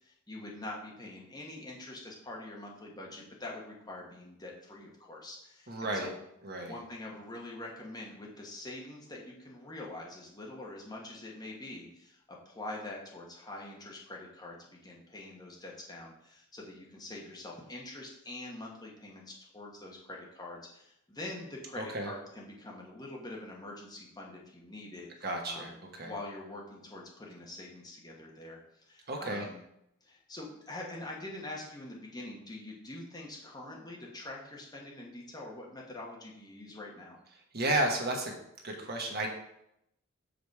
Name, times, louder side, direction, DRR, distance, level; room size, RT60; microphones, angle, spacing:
voice 1, 0.0-6.2 6.6-25.8 26.0-29.6 30.0-37.2, left 2 dB, 20° left, -2 dB, 1.3 m, -45 dB
voice 2, 5.7-6.1 6.4-6.7 21.8-22.1 25.2-26.1 29.1-29.5 37.5-38.4 38.6-39.3, right 1 dB, 45° right, 2 dB, 1.2 m, -32 dB
7.0 x 5.1 x 4.7 m, 0.79 s
head